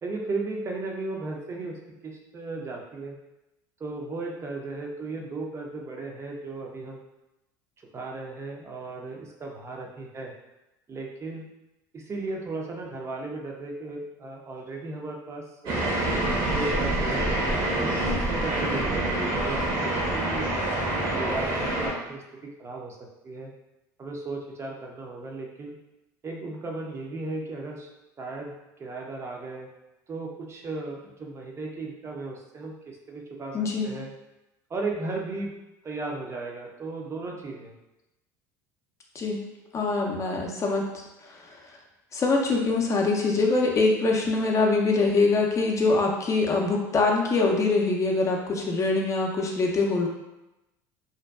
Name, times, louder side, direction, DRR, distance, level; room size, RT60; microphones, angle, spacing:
voice 1, 0.0-3.2 3.8-7.0 7.9-10.3 10.9-11.5 11.9-15.9 16.4-17.3 17.7-20.5 20.9-23.5 24.0-25.7 26.2-27.9 28.2-28.5 28.8-29.7 30.1-33.6 33.8-34.1 34.7-35.5 35.8-37.8, right 3 dB, 30° right, 0 dB, 0.5 m, -35 dB
sound 1, 15.7-21.9, right 1 dB, 55° right, 0.8 m, -26 dB
voice 2, 33.5-33.9 39.2-39.4 39.7-40.9 42.1-50.1, left 3 dB, 30° left, 0 dB, 0.4 m, -23 dB
2.5 x 2.2 x 2.2 m, 0.95 s
hypercardioid pair, 85°, 10 cm